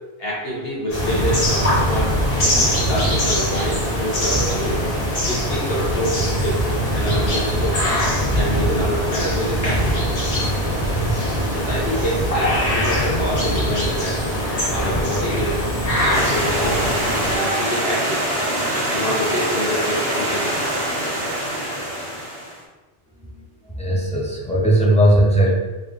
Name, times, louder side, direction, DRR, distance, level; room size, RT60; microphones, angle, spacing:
voice 1, 0.2-2.2 2.8-4.8 5.2-6.6 6.9-7.8 8.3-10.0 11.6-14.2 14.7-15.6 16.0-18.3 18.9-20.6, equal, 65° left, -5 dB, 1.0 m, -27 dB
sound 1, 0.9-17.4, equal, 35° left, 1.0 m, -21 dB
Stream, 16.1-22.6, right 1 dB, 45° right, 1.1 m, -24 dB
voice 2, 23.8-25.6, right 1 dB, 10° left, -4 dB, 0.4 m, -17 dB
3.7 x 2.5 x 3.4 m, 1.1 s
omnidirectional pair, 1.1 m